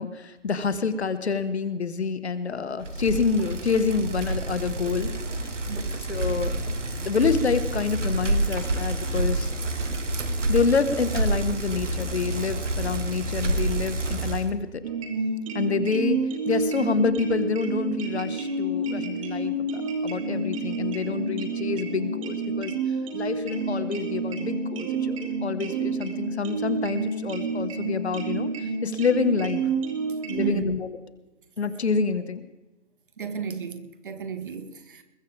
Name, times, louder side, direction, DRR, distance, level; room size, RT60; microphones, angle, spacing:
voice 1, 0.0-5.1 5.4-5.5 6.1-6.6 7.0-9.5 10.5-14.8 15.5-22.7 23.1-29.6 30.3-31.0 31.6-32.4, left 5 dB, 60° left, 1.5 m, -27 dB
Bicycle, 2.8-14.5, right 2 dB, 80° right, 2.4 m, -28 dB
voice 2, 5.7-6.1 9.8-10.3 30.4-30.7 33.2-35.0, right 6 dB, 45° right, 1.7 m, -33 dB
sound 1, 14.8-30.5, right 3 dB, 25° right, 2.1 m, -29 dB
21.5 x 14.5 x 3.5 m
hypercardioid pair, 160°, 36 cm